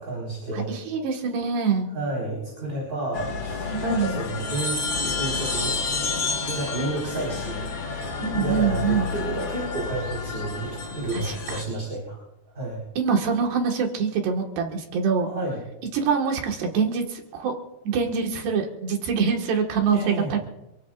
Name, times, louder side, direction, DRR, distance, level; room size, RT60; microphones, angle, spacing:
voice 1, 0.0-0.7 1.9-6.0 6.4-12.2 12.5-12.8 15.2-15.6 19.9-20.4, right 2 dB, 15° right, -4 dB, 4.8 m, -31 dB
voice 2, 0.5-1.9 3.7-4.2 8.2-9.1 11.1-11.6 13.0-15.3 15.9-17.5 17.9-20.4, right 6 dB, 80° right, 2 dB, 3.8 m, -25 dB
sound 1, 3.1-11.6, left 4 dB, 60° left, 1.2 m, -30 dB
27.0 x 16.5 x 2.5 m, 0.91 s
omnidirectional pair, 4.7 m